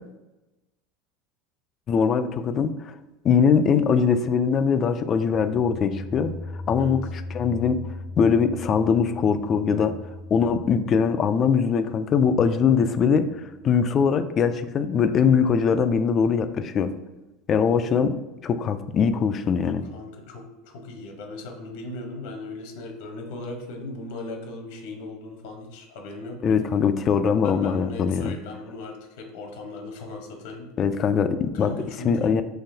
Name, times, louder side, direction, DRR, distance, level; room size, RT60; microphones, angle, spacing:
voice 1, 1.9-2.9 3.2-6.3 6.7-7.0 7.3-7.9 8.2-9.9 10.3-16.9 17.5-18.2 18.4-19.8 26.4-28.3 30.8-31.7 32.0-32.4, left 6 dB, 35° left, 11 dB, 0.3 m, -22 dB
sound 1, 5.1-14.0, left 2 dB, 60° right, 1.2 m, -39 dB
voice 2, 19.8-26.6 27.4-30.7 31.5-32.4, left 2 dB, 75° left, 2 dB, 1.0 m, -38 dB
3.8 x 2.8 x 2.7 m, 1.0 s
supercardioid pair, 115°, 0 cm